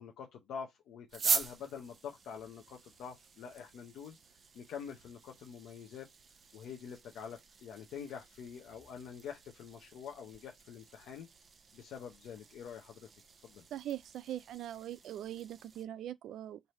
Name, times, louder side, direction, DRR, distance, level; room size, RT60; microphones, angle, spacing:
voice 1, 0.0-4.2 4.5-6.1 6.5-11.3 11.7-13.1 13.4-13.6, left 7 dB, 80° left, 0.7 m, -46 dB
sound 1, 1.1-15.8, right 5 dB, 45° right, 0.6 m, -43 dB
voice 2, 13.7-16.6, right 12 dB, 80° right, 0.3 m, -41 dB
3.3 x 2.6 x 4.2 m
cardioid pair, 90°, 0 cm